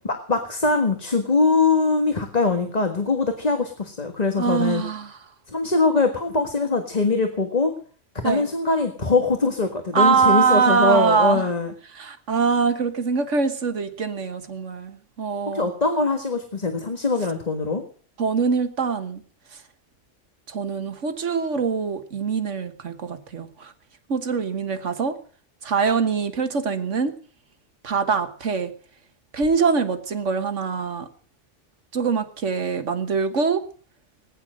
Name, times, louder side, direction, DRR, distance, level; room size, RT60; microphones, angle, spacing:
voice 1, 0.0-4.8 5.5-7.7 8.2-11.7 15.5-17.8, left 3 dB, 35° left, 1.7 m, -22 dB
voice 2, 4.4-5.1 8.2-8.5 9.9-11.5 11.9-15.7 18.2-19.2 20.5-23.7 24.1-25.2 25.6-27.1 27.8-28.7 29.3-31.1 31.9-33.6, right 5 dB, 85° right, 1.7 m, -23 dB
19.5 x 10.0 x 6.4 m
omnidirectional pair, 1.2 m